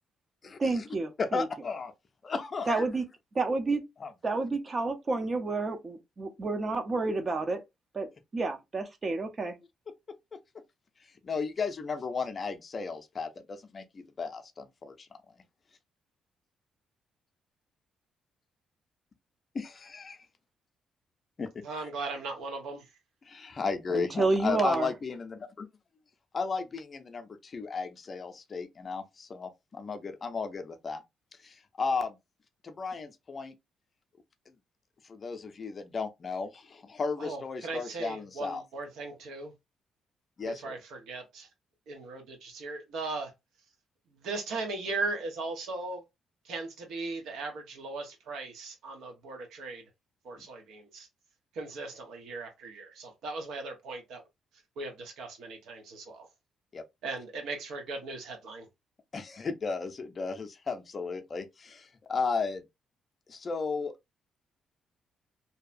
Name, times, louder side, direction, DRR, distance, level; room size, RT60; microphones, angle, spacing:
voice 1, 0.6-1.5 2.7-3.0 3.3-3.8 4.2-7.6 7.9-8.1 8.3-9.6 23.9-24.9, right 3 dB, 35° right, 0.6 m, -29 dB
voice 2, 1.2-1.9 2.2-2.8 4.0-4.1 11.2-15.1 19.5-20.2 21.4-21.5 23.2-25.7 26.3-31.0 31.4-32.2 32.6-33.5 35.1-38.6 40.4-40.8 56.7-56.8 59.1-62.6 63.3-63.9, left 4 dB, 40° left, 0.5 m, -34 dB
voice 3, 21.6-22.9 37.2-39.5 40.4-41.5 41.9-43.3 44.1-46.0 46.4-49.8 50.2-51.1 51.5-54.2 54.8-56.3 57.0-58.7, right 3 dB, 85° right, 0.9 m, -38 dB
2.7 x 2.2 x 2.5 m
cardioid pair, 90°, 0 cm